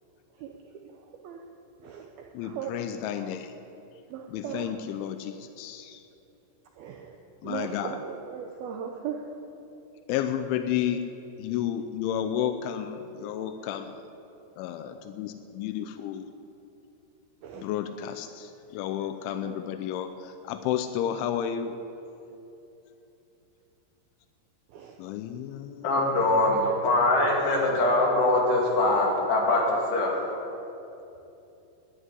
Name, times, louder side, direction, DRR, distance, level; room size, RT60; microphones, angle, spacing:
voice 1, 2.3-3.5 4.3-6.0 7.4-8.0 10.1-11.0 11.4-14.0 14.6-16.3 17.5-21.8 25.0-25.9, left 10 dB, 85° left, 8 dB, 3.1 m, -32 dB
voice 2, 4.1-4.7 6.8-7.2 7.4-9.3 17.4-17.7 19.4-19.6 24.7-25.0, right 8 dB, 90° right, 2 dB, 2.2 m, -37 dB
voice 3, 25.8-30.1, left 2 dB, 65° left, -2 dB, 4.4 m, -23 dB
12.5 x 10.0 x 10.0 m, 2.8 s
omnidirectional pair, 5.4 m